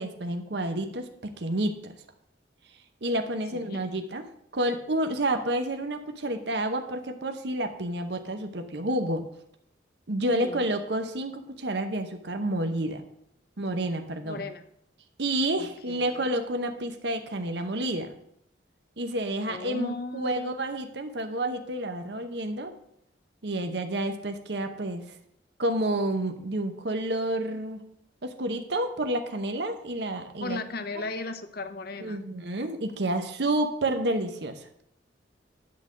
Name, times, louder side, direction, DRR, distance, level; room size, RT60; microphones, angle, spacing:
voice 1, 0.0-1.7 3.0-4.3 4.5-9.2 10.1-13.0 13.6-14.4 15.2-18.1 19.0-22.7 23.4-25.0 25.6-27.8 28.2-30.6 32.0-34.7, right 1 dB, 60° right, 7 dB, 0.9 m, -29 dB
voice 2, 10.4-10.7 14.2-14.6 15.6-16.3 19.5-20.6 30.4-32.2, left 3 dB, 55° left, 9 dB, 0.8 m, -36 dB
10.5 x 3.8 x 7.5 m, 0.72 s
head